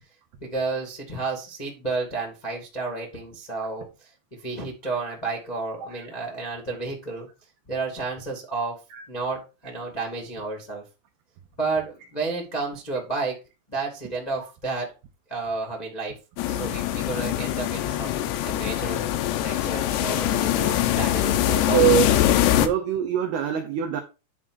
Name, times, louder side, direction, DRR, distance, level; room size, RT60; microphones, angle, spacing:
voice 1, 0.4-7.3 7.7-8.8 9.1-10.8 11.6-13.4 13.7-14.9 15.3-16.2 16.5-19.0 19.4-22.0, right 3 dB, 45° left, 0.5 m, -31 dB
sound 1, 16.4-22.7, left 12 dB, 85° left, 3.7 m, -23 dB
voice 2, 21.7-22.2 22.6-24.0, right 11 dB, 85° right, 2.2 m, -23 dB
10.5 x 3.7 x 6.3 m
omnidirectional pair, 6.0 m